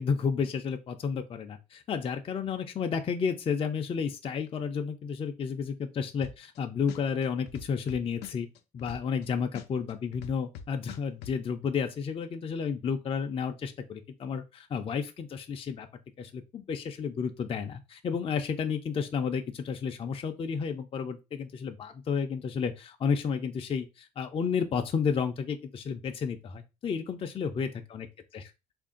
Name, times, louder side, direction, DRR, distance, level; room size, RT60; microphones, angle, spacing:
voice 1, 0.0-8.5 8.7-15.9 16.2-28.1 28.3-28.4, left 6 dB, 35° left, 5 dB, 0.5 m, -31 dB
sound 1, 6.2-6.6 6.9-9.2 9.5-11.3, left 8 dB, 80° left, 0.5 m, -43 dB
3.6 x 2.5 x 3.6 m, 0.26 s
cardioid pair, 110°, 17 cm